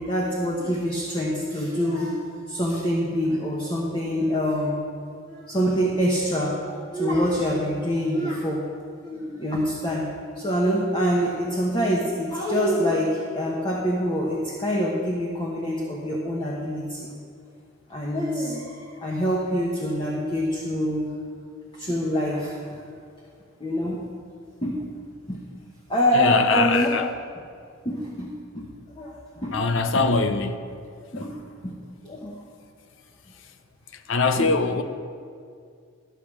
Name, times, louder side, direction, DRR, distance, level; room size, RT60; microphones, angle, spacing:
voice 1, 0.0-2.2 2.5-4.8 5.3-8.6 9.0-10.0 10.4-17.1 17.9-21.1 21.7-22.7 23.6-24.0 24.6-24.8 25.3-25.4 25.9-26.9 27.8-28.3 28.5-28.7 29.0-29.6 29.9-30.0 31.1-31.4 31.6-31.7 32.0-32.3 34.4-34.5, equal, 25° left, -3 dB, 1.1 m, -25 dB
voice 2, 26.1-27.1 29.5-30.6 31.1-31.3 34.1-34.8, left 4 dB, 65° left, 8 dB, 0.7 m, -22 dB
12.5 x 5.0 x 7.3 m, 2.3 s
head